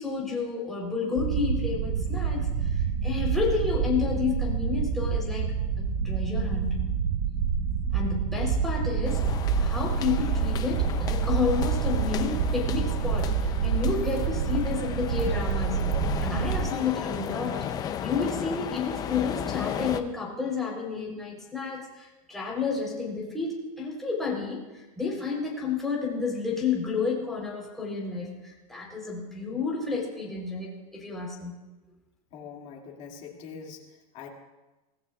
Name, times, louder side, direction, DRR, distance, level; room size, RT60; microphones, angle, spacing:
voice 1, 0.0-2.7 3.0-6.8 7.9-9.3 9.6-17.6 18.0-31.5, left 5 dB, ahead, -4 dB, 3.7 m, -31 dB
sound 1, 1.2-16.7, right 6 dB, 60° right, 1.0 m, -27 dB
sound 2, 9.0-20.0, left 9 dB, 20° left, 0.6 m, -35 dB
voice 2, 32.3-34.3, left 6 dB, 35° left, -1 dB, 2.4 m, -43 dB
24.5 x 17.0 x 2.4 m, 1.1 s
supercardioid pair, 160°, 18 cm